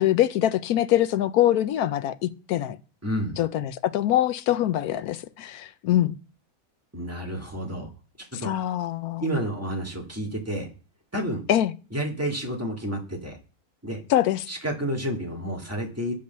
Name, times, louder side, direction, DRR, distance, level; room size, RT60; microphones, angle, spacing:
voice 1, 0.0-2.8 3.4-6.2 8.4-9.3 11.5-11.7 14.1-14.5, left 12 dB, 80° left, 1.1 m, -24 dB
voice 2, 3.0-3.4 6.9-7.9 8.2-8.5 9.2-10.7 11.1-11.4 11.9-13.4 13.8-14.0 14.5-16.1, equal, 10° right, 1.8 m, -30 dB
8.2 x 5.4 x 6.7 m
omnidirectional pair, 1.6 m